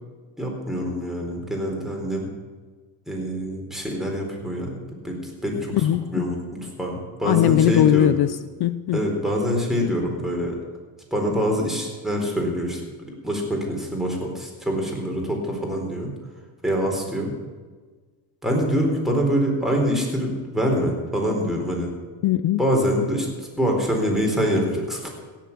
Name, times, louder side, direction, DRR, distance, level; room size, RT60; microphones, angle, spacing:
voice 1, 0.4-2.3 3.1-4.7 5.0-8.1 8.9-10.5 11.1-12.8 13.2-16.1 16.6-17.3 18.4-21.9 22.6-25.1, equal, ahead, -1 dB, 4.2 m, -25 dB
voice 2, 5.8-6.2 7.3-9.0 22.2-22.6, left 11 dB, 50° left, 13 dB, 0.7 m, -20 dB
16.5 x 7.5 x 8.5 m, 1.4 s
cardioid pair, 115°, 49 cm